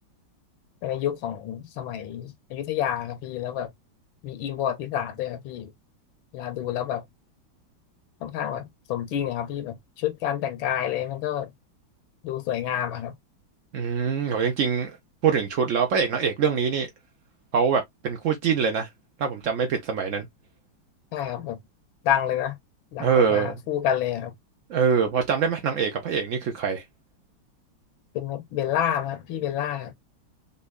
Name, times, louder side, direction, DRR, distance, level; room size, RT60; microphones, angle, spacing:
voice 1, 0.8-3.7 4.2-5.7 6.3-7.0 8.2-11.5 12.2-13.1 21.1-21.6 22.0-22.6 22.9-24.3 28.1-29.9, left 10 dB, 85° left, 1.5 m, -29 dB
voice 2, 13.7-15.0 15.2-16.9 17.5-18.9 19.2-20.3 23.0-23.6 24.7-26.8, right 6 dB, 80° right, 0.7 m, -24 dB
5.4 x 2.2 x 2.2 m
omnidirectional pair, 2.1 m